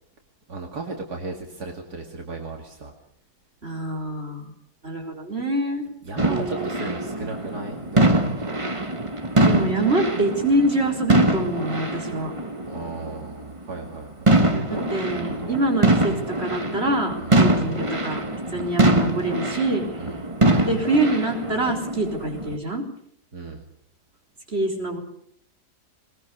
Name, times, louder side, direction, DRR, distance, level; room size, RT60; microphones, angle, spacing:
voice 1, 0.5-2.9 6.0-8.2 12.7-15.6 17.2-17.4 18.5-18.7 20.0-20.2 23.3-23.6, right 3 dB, 70° right, 2 dB, 2.8 m, -35 dB
voice 2, 3.6-4.5 4.8-5.9 6.3-7.1 9.4-12.3 14.7-18.2 18.5-19.8 20.7-22.8 24.5-25.0, right 1 dB, 40° right, 2 dB, 4.3 m, -25 dB
sound 1, 6.2-13.3 13.9-14.0 14.3-22.6, right 2 dB, 20° right, 1.8 m, -23 dB
21.0 x 21.0 x 6.9 m, 0.67 s
omnidirectional pair, 1.7 m